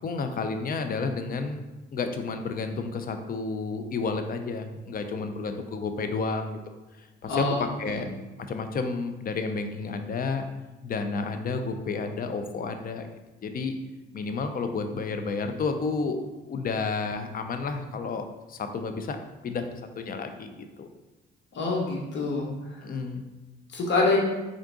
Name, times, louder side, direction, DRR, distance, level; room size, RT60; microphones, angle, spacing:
voice 1, 0.0-1.6 1.9-6.6 7.0-8.1 8.5-10.4 10.8-13.1 13.4-13.8 14.1-16.2 16.5-19.2 19.4-20.9 22.8-23.2, left 4 dB, 45° left, 7 dB, 0.5 m, -31 dB
voice 2, 21.5-22.5 23.7-24.2, left 3 dB, 65° left, -2 dB, 1.3 m, -25 dB
3.7 x 3.6 x 3.7 m, 1.1 s
cardioid pair, 90°, 20 cm